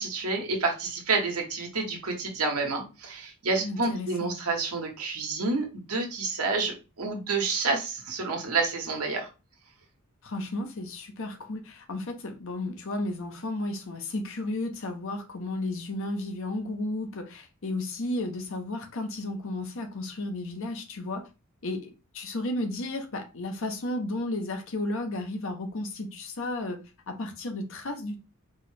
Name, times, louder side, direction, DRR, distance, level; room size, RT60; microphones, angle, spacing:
voice 1, 0.0-9.3, right 3 dB, 85° right, 1.2 m, -29 dB
voice 2, 3.6-4.4 10.2-21.3 21.6-28.2, left 2 dB, 60° left, 0.7 m, -33 dB
4.4 x 2.2 x 3.2 m
head